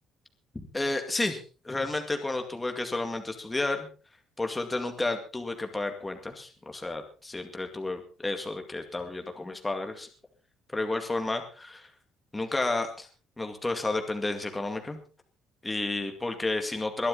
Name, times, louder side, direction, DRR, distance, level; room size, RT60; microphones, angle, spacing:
voice 1, 0.7-3.9 4.4-10.1 10.7-11.9 12.3-13.1 13.4-15.0 15.6-17.1, left 2 dB, 10° left, 5 dB, 2.2 m, -31 dB
21.5 x 12.0 x 4.0 m, 0.35 s
cardioid pair, 155°, 0 cm